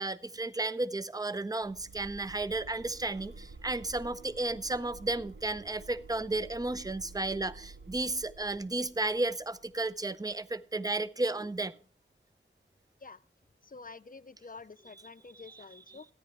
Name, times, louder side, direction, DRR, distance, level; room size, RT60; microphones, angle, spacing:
voice 1, 0.0-11.7 15.3-16.1, right 2 dB, 20° right, 15 dB, 0.5 m, -33 dB
sound 1, 1.6-10.5, right 3 dB, 65° right, 0.8 m, -51 dB
voice 2, 13.6-16.0, left 4 dB, 45° left, 15 dB, 0.5 m, -48 dB
14.0 x 10.0 x 3.3 m, 0.42 s
wide cardioid pair, 45°, 21 cm